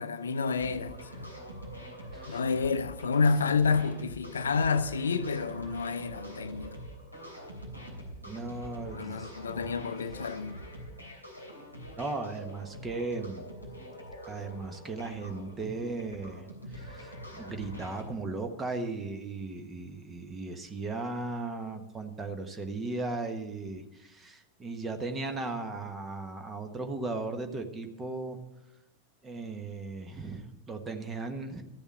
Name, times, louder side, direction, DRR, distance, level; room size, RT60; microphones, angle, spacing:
voice 1, 0.0-1.3 2.3-6.7 8.9-10.6, left 5 dB, 70° left, 0.6 m, -29 dB
sound 1, 0.6-18.1, equal, 90° right, 3.3 m, -44 dB
voice 2, 8.2-9.6 12.0-13.5 14.3-28.4 29.2-31.6, right 3 dB, 15° right, 1.3 m, -37 dB
13.5 x 7.0 x 7.6 m
figure-of-eight pair, 90°, 0 cm